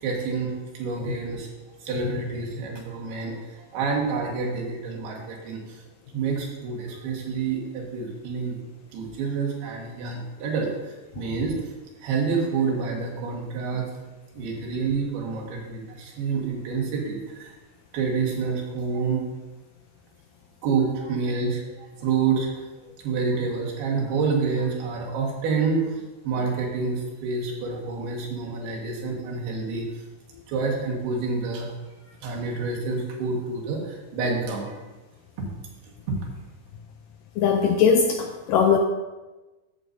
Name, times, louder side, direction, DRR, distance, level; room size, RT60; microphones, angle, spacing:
voice 1, 0.0-1.5 1.8-5.8 6.1-8.6 8.9-11.6 12.0-13.9 14.4-17.5 17.9-19.3 20.6-29.9 30.5-31.7 32.0-34.8 36.1-36.2, right 4 dB, 85° right, -1 dB, 3.6 m, -28 dB
voice 2, 37.4-38.8, left 6 dB, 85° left, 4 dB, 2.0 m, -20 dB
13.5 x 7.7 x 2.7 m, 1.2 s
omnidirectional pair, 4.4 m